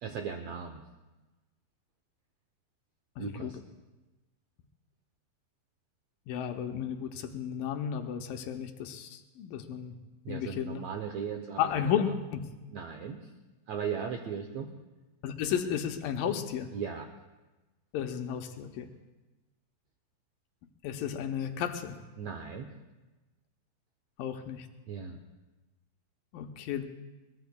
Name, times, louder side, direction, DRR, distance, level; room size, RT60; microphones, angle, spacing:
voice 1, 0.0-0.8 3.2-3.6 10.2-11.7 12.7-13.2 13.7-14.7 16.7-17.1 22.2-22.7 24.9-25.2, right 6 dB, 75° right, 4 dB, 1.6 m, -37 dB
voice 2, 3.2-3.5 6.3-9.9 10.3-10.8 11.6-12.5 15.2-16.7 17.9-18.9 20.8-22.0 24.2-24.7 26.3-26.8, left 8 dB, 80° left, 5 dB, 2.4 m, -33 dB
22.5 x 20.0 x 2.2 m, 1.1 s
omnidirectional pair, 4.0 m